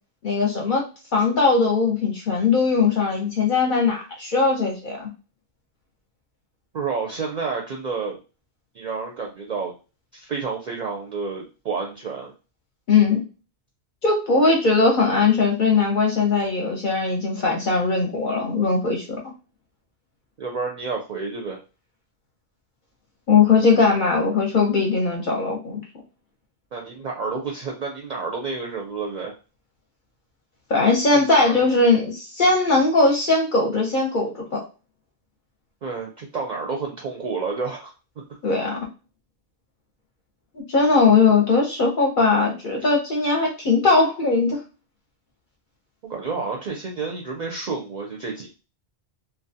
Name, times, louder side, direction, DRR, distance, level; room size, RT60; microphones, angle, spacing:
voice 1, 0.2-0.8 1.1-5.1 12.9-13.2 14.0-19.2 23.3-25.8 30.7-34.6 38.4-38.8 40.5-44.6, left 4 dB, 55° left, 0 dB, 0.7 m, -20 dB
voice 2, 6.7-8.2 8.7-9.7 10.1-12.3 20.4-21.6 26.7-29.3 31.1-31.7 35.8-37.9 46.1-48.6, right 4 dB, 55° right, 0 dB, 0.5 m, -30 dB
2.6 x 2.1 x 2.6 m, 0.32 s
omnidirectional pair, 1.1 m